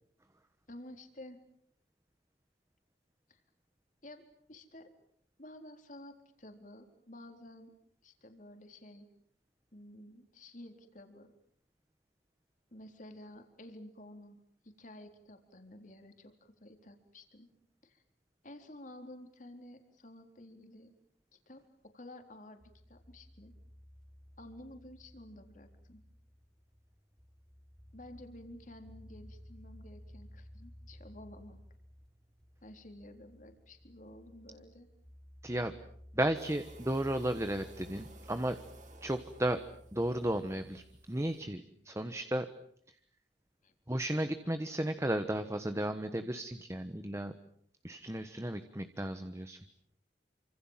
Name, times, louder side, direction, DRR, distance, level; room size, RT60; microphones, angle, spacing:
voice 1, 0.7-1.4 3.3-3.4 4.0-4.2 4.5-4.9 5.4-7.7 8.0-9.1 9.7-11.3 12.7-17.5 17.8-18.0 18.4-20.9 21.5-22.6 22.9-23.5 24.4-26.0 27.9-31.6 32.6-34.9 43.6-43.7, left 1 dB, 45° left, 6 dB, 4.0 m, -52 dB
sound 1, 22.6-41.0, equal, ahead, 4.4 m, -55 dB
voice 2, 35.4-35.7 36.1-38.6 39.0-39.6 39.9-42.5 43.9-47.3 47.8-49.6, right 1 dB, 15° right, 9 dB, 1.2 m, -34 dB
sound 2, 36.3-41.4, right 2 dB, 45° right, 4.5 m, -58 dB
29.0 x 26.0 x 7.5 m, 0.67 s
head